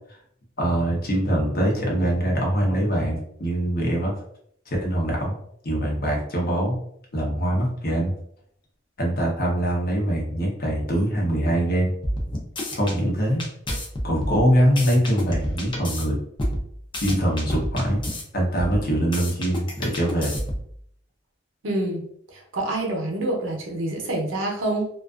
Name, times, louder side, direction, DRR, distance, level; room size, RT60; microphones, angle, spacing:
voice 1, 0.6-4.1 4.7-5.4 5.6-6.8 7.1-8.1 9.0-11.9 12.7-13.4 14.0-16.2 17.0-18.0 18.3-20.3, right 1 dB, 50° left, -2 dB, 0.8 m, -23 dB
sound 1, 12.0-13.0 13.4-16.0 16.4-18.2 18.6-20.7, equal, 25° left, 0.5 m, -30 dB
voice 2, 21.6-22.0 22.3-24.9, right 1 dB, 75° right, 0 dB, 0.7 m, -26 dB
2.5 x 2.3 x 2.3 m, 0.68 s
head